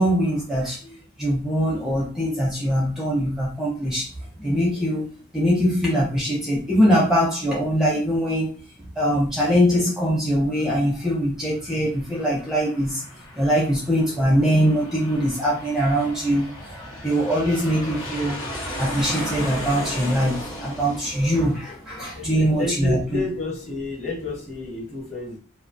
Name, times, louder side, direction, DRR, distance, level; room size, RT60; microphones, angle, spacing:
voice 1, 0.0-4.1 4.4-8.5 9.0-13.0 13.4-23.2, equal, ahead, -4 dB, 0.4 m, -22 dB
Aircraft, 11.7-22.9, equal, 85° left, 0.9 m, -36 dB
voice 2, 21.6-25.4, left 2 dB, 35° left, -3 dB, 1.1 m, -31 dB
2.3 x 2.1 x 2.5 m, 0.38 s
head